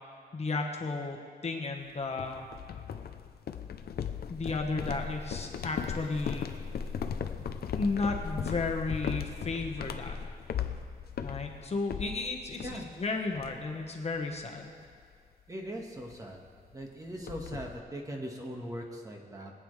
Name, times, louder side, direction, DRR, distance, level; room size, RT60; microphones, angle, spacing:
voice 1, 0.3-2.5 4.3-6.5 7.7-10.2 11.2-14.7, left 3 dB, 45° left, 2 dB, 1.3 m, -33 dB
sound 1, 2.2-13.0 13.3-13.8 14.1-14.4 14.8-15.0 16.1-16.2 16.5-16.6 16.8-17.8, left 7 dB, 80° left, 0.6 m, -37 dB
voice 2, 15.5-16.4 16.7-19.5, equal, 20° right, 0 dB, 1.7 m, -40 dB
22.5 x 9.1 x 3.3 m, 2.1 s
wide cardioid pair, 110°, 16 cm